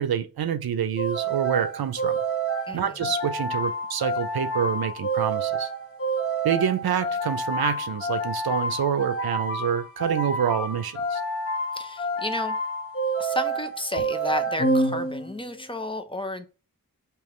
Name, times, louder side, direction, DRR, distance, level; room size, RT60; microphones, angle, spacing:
voice 1, 0.0-2.2 2.7-5.7 6.4-11.2, right 8 dB, 85° right, 0.6 m, -27 dB
sound 1, 1.0-15.5, right 2 dB, 40° left, 1.4 m, -28 dB
voice 2, 2.7-3.1 11.7-12.6 13.2-16.5, left 1 dB, 15° left, 0.6 m, -32 dB
3.5 x 3.0 x 3.0 m
cardioid pair, 50°, 36 cm